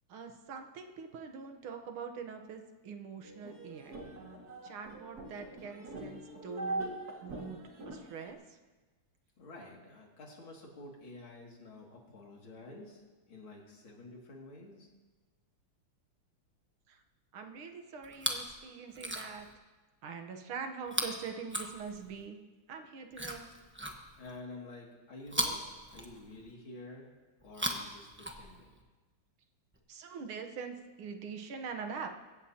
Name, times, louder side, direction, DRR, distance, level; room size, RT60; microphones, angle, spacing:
voice 1, 0.1-3.9 4.6-6.9 7.2-7.6 7.9-8.6 16.9-17.0 17.3-19.5 20.0-22.4 22.7-23.5 29.9-32.1, right 5 dB, 80° right, 5 dB, 2.0 m, -43 dB
sound 1, 3.2-8.3, right 2 dB, 50° right, 2.6 m, -42 dB
voice 2, 9.4-13.0 13.3-14.9 24.2-27.1 27.4-28.7, left 2 dB, 70° left, -2 dB, 3.3 m, -49 dB
Chewing mastication, 18.0-18.5 18.9-19.5 20.9-22.2 23.1-24.4 25.3-26.5 27.4-28.8 29.7-29.8, right 1 dB, 10° right, 0.7 m, -38 dB
22.0 x 16.0 x 2.9 m, 1.2 s
omnidirectional pair, 2.3 m